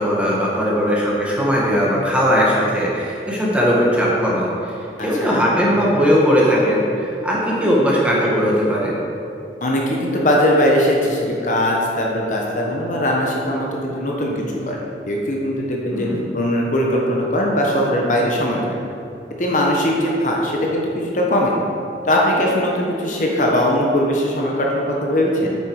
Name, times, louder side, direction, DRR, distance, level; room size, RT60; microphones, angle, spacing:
voice 1, 0.0-8.9 15.9-16.2, equal, 5° right, -5 dB, 1.6 m, -18 dB
voice 2, 5.0-5.4 9.6-14.8 15.1-16.1 16.3-18.6 19.4-21.5 22.0-25.6, equal, 45° left, -2 dB, 1.1 m, -20 dB
9.0 x 6.8 x 4.8 m, 2.7 s
head